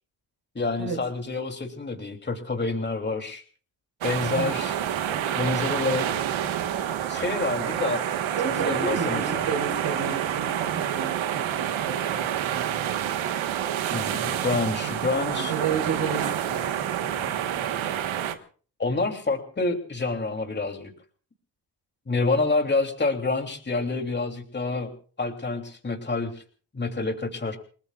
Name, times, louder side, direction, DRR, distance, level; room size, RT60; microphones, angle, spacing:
voice 1, 0.5-3.4 4.0-4.8 5.1-6.2 7.1-8.0 8.6-9.5 13.9-15.5 18.8-20.9 22.1-24.9 25.2-26.4 26.7-27.6, left 3 dB, 25° left, 4 dB, 3.0 m, -28 dB
sound 1, 4.0-18.3, right 10 dB, 85° right, 1.5 m, -28 dB
voice 2, 8.3-13.2 14.1-14.5 14.8-14.9 15.2-17.9, right 5 dB, 70° right, 3 dB, 4.8 m, -33 dB
30.0 x 19.5 x 2.5 m, 0.41 s
cardioid pair, 95°, 46 cm